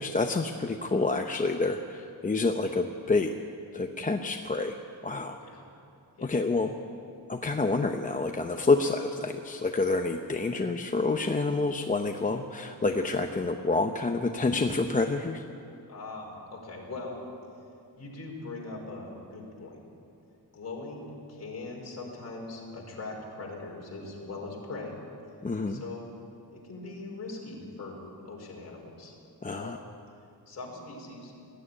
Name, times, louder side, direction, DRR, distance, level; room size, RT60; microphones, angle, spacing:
voice 1, 0.0-3.4 3.7-4.8 5.0-5.4 6.2-6.8 7.3-15.4 25.4-25.8 29.4-29.8, left 3 dB, 20° left, 4 dB, 0.7 m, -28 dB
voice 2, 15.9-17.2 18.0-19.8 20.5-25.0 25.7-26.1 26.5-29.1 29.4-29.7 30.5-31.3, left 3 dB, 40° left, -1 dB, 4.9 m, -41 dB
20.0 x 14.0 x 9.9 m, 2.6 s
wide cardioid pair, 160°, 38 cm